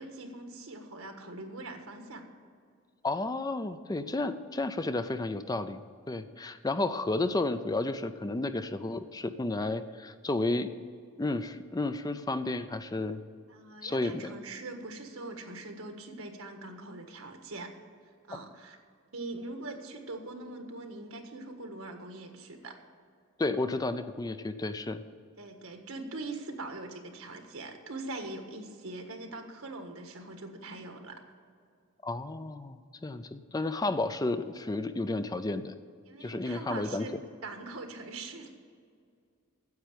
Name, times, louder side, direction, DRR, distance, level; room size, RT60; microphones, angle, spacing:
voice 1, 0.0-2.2 13.5-17.7 18.3-18.8 19.1-22.7 25.4-31.2 36.0-37.1 37.4-38.5, right 2 dB, 85° right, 4 dB, 1.6 m, -42 dB
voice 2, 3.0-10.7 11.2-13.2 13.8-14.3 23.4-25.0 32.0-35.7 36.2-37.1, left 2 dB, 20° left, 11 dB, 0.4 m, -32 dB
9.5 x 7.9 x 9.0 m, 2.2 s
head